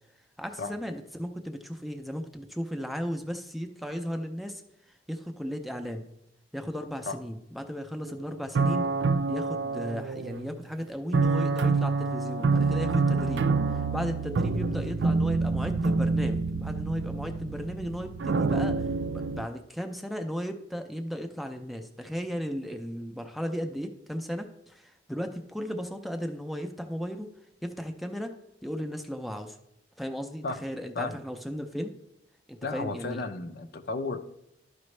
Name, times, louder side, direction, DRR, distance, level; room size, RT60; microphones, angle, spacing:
voice 1, 0.4-4.6 5.1-6.1 6.5-8.9 9.3-27.3 27.6-28.3 28.6-29.6 30.0-31.9 32.5-33.2, equal, ahead, 5 dB, 0.5 m, -35 dB
sound 1, 8.1-8.2 8.5-10.6 11.1-19.5, right 4 dB, 75° right, 0.4 m, -27 dB
voice 2, 32.6-34.2, left 3 dB, 55° left, 7 dB, 0.6 m, -33 dB
12.0 x 5.1 x 3.2 m, 0.81 s
head